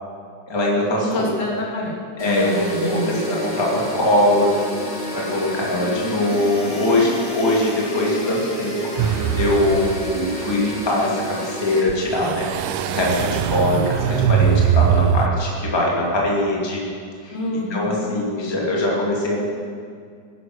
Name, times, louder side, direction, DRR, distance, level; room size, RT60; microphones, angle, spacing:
voice 1, 0.5-1.3 2.2-4.6 5.1-16.8 17.2-17.3 17.7-19.4, left 1 dB, 10° left, -3 dB, 2.0 m, -22 dB
voice 2, 1.0-2.0 2.3-3.2 17.3-18.1, left 1 dB, 75° left, -4 dB, 4.1 m, -27 dB
sound 1, 2.2-11.8, equal, 35° left, 3.3 m, -30 dB
sound 2, 9.0-10.1 10.5-10.6 11.9-15.3, right 9 dB, 90° right, 1.4 m, -21 dB
16.0 x 11.0 x 6.3 m, 2.2 s
omnidirectional pair, 3.6 m